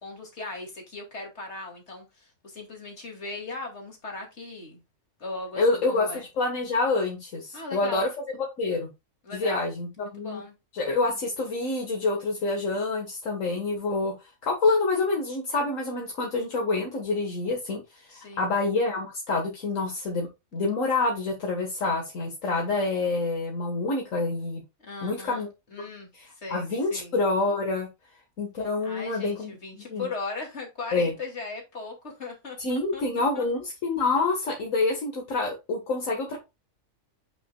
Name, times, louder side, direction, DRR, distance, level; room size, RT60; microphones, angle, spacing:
voice 1, 0.0-4.8 5.2-6.3 7.5-8.1 9.2-9.7 10.0-10.5 18.1-18.6 24.8-25.4 25.7-26.1 26.3-27.1 28.8-33.4, left 3 dB, 55° left, 2.8 m, -38 dB
voice 2, 5.6-8.1 8.6-8.9 9.3-10.4 10.7-14.1 14.4-20.3 20.5-24.6 25.0-25.5 26.1-27.9 28.4-29.5 29.9-30.1 30.9-31.1 32.6-36.4, left 3 dB, 70° left, 1.9 m, -27 dB
8.5 x 5.9 x 2.3 m
omnidirectional pair, 1.4 m